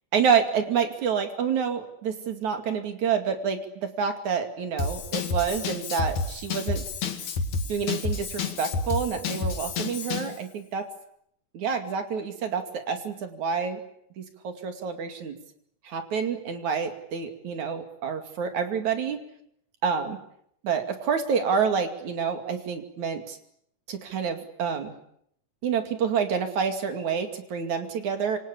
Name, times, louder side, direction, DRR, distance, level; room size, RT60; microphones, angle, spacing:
voice 1, 0.1-6.8 7.7-10.9 11.5-13.8 14.2-15.4 15.8-19.2 19.8-20.2 20.6-23.4 23.9-24.9 25.6-28.4, right 6 dB, 65° right, 6 dB, 3.8 m, -28 dB
Drum kit / Drum, 4.8-10.4, left 4 dB, 65° left, 3.3 m, -30 dB
27.0 x 24.5 x 8.5 m, 0.71 s
omnidirectional pair, 3.6 m